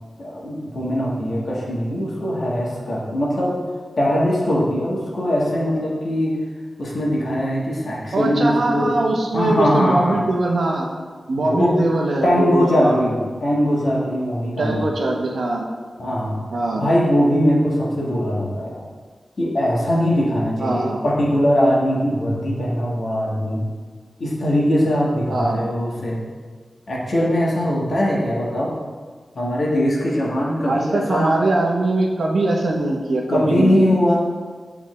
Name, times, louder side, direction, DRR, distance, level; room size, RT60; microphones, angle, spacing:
voice 1, 0.2-3.6 4.0-6.4 6.8-9.0 9.3-10.2 11.4-11.8 12.2-14.9 16.0-16.4 16.7-18.9 19.4-23.7 24.2-26.2 26.9-28.8 29.3-31.4 33.3-34.2, equal, 60° left, -4 dB, 1.3 m, -21 dB
voice 2, 8.1-10.9 11.3-13.0 14.6-15.6 16.5-16.8 20.6-21.0 25.3-25.6 30.7-33.8, right 2 dB, 75° right, 0 dB, 0.8 m, -21 dB
8.5 x 3.5 x 3.1 m, 1.5 s
wide cardioid pair, 130°, 0 cm